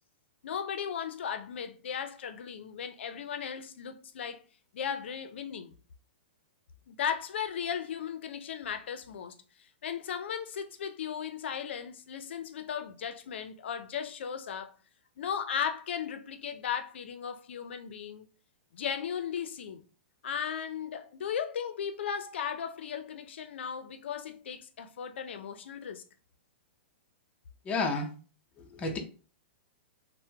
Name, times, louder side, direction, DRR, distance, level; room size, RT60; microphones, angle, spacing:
voice 1, 0.4-4.4 4.7-5.7 6.9-9.4 9.8-14.7 15.2-18.3 18.7-19.8 20.2-26.0, left 8 dB, 80° left, 0.5 m, -36 dB
voice 2, 27.6-28.1 28.6-29.0, left 3 dB, 20° left, 0.6 m, -31 dB
3.4 x 2.1 x 2.8 m
hypercardioid pair, 140°, 6 cm